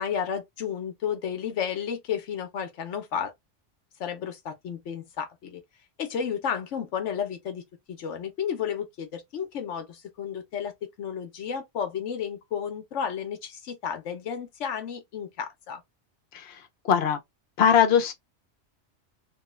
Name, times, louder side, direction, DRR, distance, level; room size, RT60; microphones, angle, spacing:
voice 1, 0.0-3.3 4.0-5.6 6.0-10.7 11.0-15.8, left 7 dB, 90° left, 1.1 m, -32 dB
voice 2, 16.3-17.2 17.6-18.1, left 7 dB, 60° left, 1.0 m, -22 dB
3.1 x 2.3 x 3.0 m
omnidirectional pair, 1.2 m